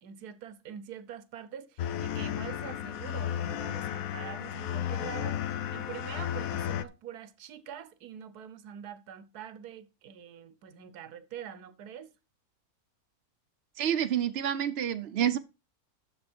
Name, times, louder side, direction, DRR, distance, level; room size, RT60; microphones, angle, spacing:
voice 1, 0.0-12.1, right 8 dB, 85° right, 1.4 m, -45 dB
sound 1, 1.8-6.8, left 10 dB, 70° left, 1.1 m, -33 dB
voice 2, 13.8-15.4, right 9 dB, 55° right, 0.7 m, -28 dB
10.5 x 7.0 x 4.4 m
omnidirectional pair, 1.6 m